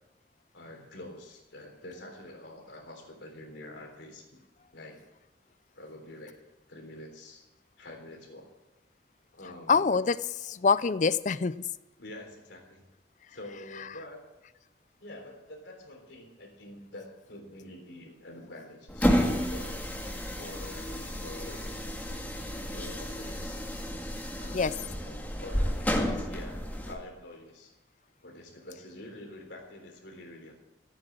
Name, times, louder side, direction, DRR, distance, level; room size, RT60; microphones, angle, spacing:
voice 1, 0.5-4.4 4.7-5.0 5.7-6.4 6.7-7.4 7.8-8.5 9.3-9.8 12.0-12.8 13.3-14.2 15.0-19.7 20.4-21.8 22.5-23.6 24.4-27.7 28.2-30.5, left 1 dB, 85° left, 2 dB, 3.6 m, -46 dB
voice 2, 9.7-11.6 24.5-24.7, left 5 dB, 40° left, 17 dB, 0.4 m, -25 dB
water fountain, 18.9-27.0, equal, 10° left, 1.8 m, -31 dB
14.5 x 9.0 x 7.5 m, 0.99 s
head